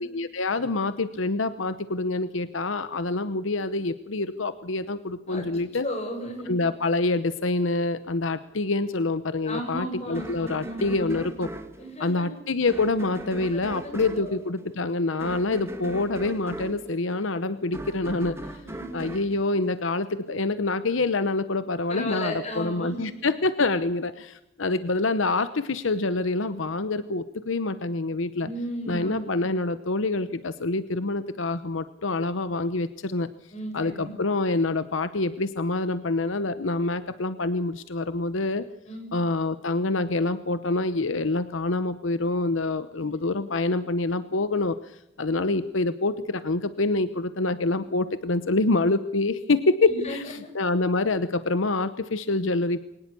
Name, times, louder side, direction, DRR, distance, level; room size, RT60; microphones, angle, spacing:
voice 1, 0.0-5.9 6.5-11.5 12.0-18.4 18.9-28.5 28.9-33.3 33.7-38.6 39.1-52.8, left 3 dB, 75° left, 12 dB, 0.9 m, -26 dB
voice 2, 5.8-6.6 9.4-11.2 11.8-12.3 13.5-14.4 18.6-18.9 21.9-23.1 28.4-29.2 33.5-34.1 38.9-39.1 43.0-43.1 49.9-50.5, equal, 35° left, 3 dB, 7.7 m, -35 dB
sound 1, 10.1-20.4, right 1 dB, 15° right, 2.1 m, -39 dB
22.5 x 19.0 x 6.9 m, 0.87 s
head